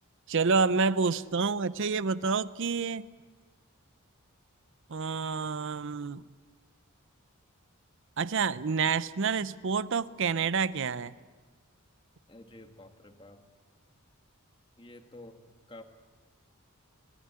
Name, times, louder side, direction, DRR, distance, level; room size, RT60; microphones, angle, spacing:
voice 1, 0.3-3.1 4.9-6.2 8.2-11.1, right 5 dB, 55° right, 17 dB, 0.6 m, -28 dB
voice 2, 12.3-13.4 14.8-15.4 15.7-15.8, left 1 dB, 20° left, 6 dB, 1.5 m, -50 dB
24.5 x 15.5 x 9.7 m, 1.5 s
head